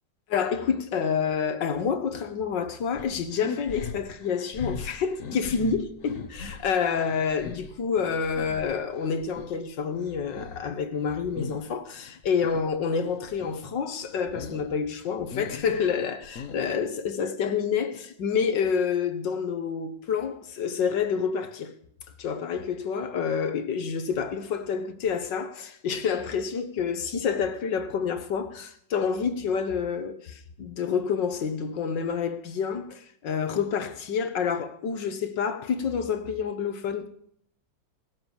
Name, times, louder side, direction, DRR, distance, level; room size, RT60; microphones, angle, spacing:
voice 1, 0.3-21.7 22.2-37.1, left 6 dB, 70° left, 1.9 m, -28 dB
sound 1, 3.0-9.6 9.9-11.7 12.0-12.7 13.0-13.7 14.0-14.7 15.0-16.9, left 5 dB, 50° left, 1.3 m, -40 dB
17.0 x 7.8 x 7.1 m
omnidirectional pair, 2.0 m